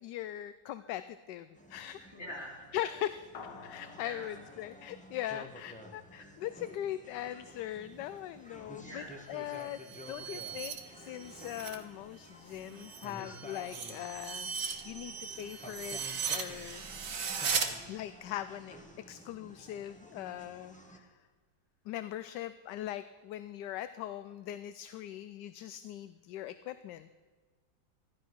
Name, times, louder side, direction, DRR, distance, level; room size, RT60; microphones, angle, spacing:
voice 1, 0.0-2.0 2.7-3.3 3.6-9.8 10.1-14.5 14.8-16.0 16.3-16.8 17.8-18.8 19.1-21.1 21.9-27.1, left 12 dB, 75° left, 13 dB, 1.1 m, -40 dB
sound 1, 1.5-21.0, equal, 5° left, 1.3 m, -52 dB
voice 2, 2.0-2.7 4.0-4.3 6.2-6.3 8.8-9.2 13.2-13.4, equal, 35° left, -2 dB, 3.7 m, -45 dB
sound 2, 3.3-6.0, left 5 dB, 55° left, 1.4 m, -52 dB
sound 3, 9.4-11.8 12.2-17.7, right 6 dB, 50° right, 1.5 m, -38 dB
15.5 x 11.5 x 6.2 m, 1.5 s
omnidirectional pair, 2.0 m